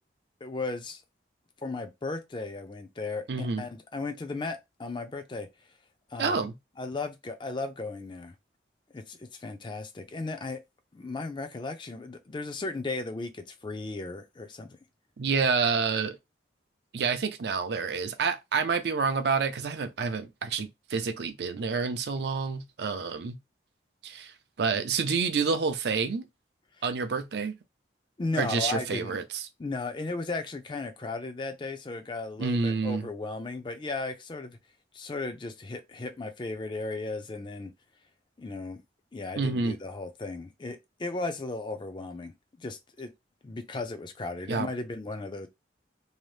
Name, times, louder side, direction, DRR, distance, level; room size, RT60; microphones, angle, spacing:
voice 1, 0.4-1.0 1.6-5.5 6.1-6.5 6.8-8.3 8.9-10.6 10.9-14.8 28.2-29.1 29.6-34.6 34.9-37.7 38.4-38.8 39.1-42.3 42.6-43.1 43.4-45.5, left 3 dB, 25° left, 0.4 m, -35 dB
voice 2, 3.3-3.6 6.2-6.5 15.2-16.2 16.9-23.4 24.0-26.3 26.8-27.5 28.3-29.4 32.4-33.1 39.3-39.7 44.5-44.7, right 5 dB, 65° right, 0.4 m, -28 dB
2.7 x 2.0 x 3.2 m
head